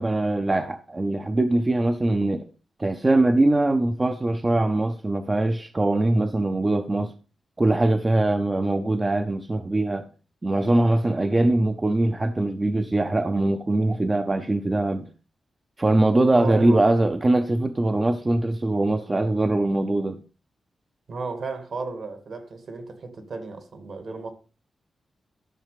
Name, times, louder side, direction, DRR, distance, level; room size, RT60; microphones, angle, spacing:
voice 1, 0.0-2.4 2.8-7.1 7.6-10.1 10.4-15.1 15.8-20.2, right 2 dB, 20° right, 0.6 m, -22 dB
voice 2, 16.3-16.8 21.1-24.3, right 3 dB, 55° right, 2.1 m, -33 dB
12.5 x 6.4 x 5.0 m
wide cardioid pair, 160°, 0 cm